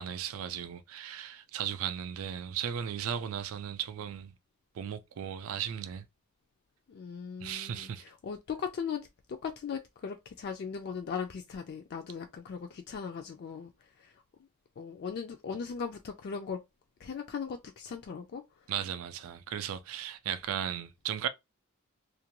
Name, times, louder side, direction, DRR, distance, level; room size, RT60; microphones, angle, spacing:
voice 1, 0.0-4.3 4.8-6.0 7.4-8.0 18.7-21.3, right 9 dB, 70° right, 0.3 m, -36 dB
voice 2, 6.9-14.2 14.8-16.6 17.0-18.4, left 6 dB, 50° left, 0.3 m, -38 dB
2.5 x 2.2 x 2.9 m
head